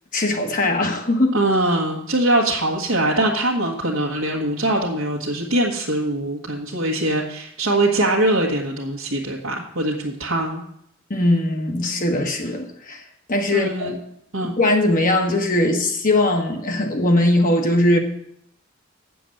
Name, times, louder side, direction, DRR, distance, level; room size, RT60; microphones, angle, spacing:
voice 1, 0.1-1.4 11.1-13.0 13.3-14.0 14.4-18.0, left 1 dB, 40° left, 3 dB, 1.3 m, -20 dB
voice 2, 1.3-10.6 13.5-13.9 14.3-14.6, right 1 dB, 65° right, -4 dB, 1.4 m, -22 dB
8.4 x 7.0 x 7.8 m, 0.71 s
head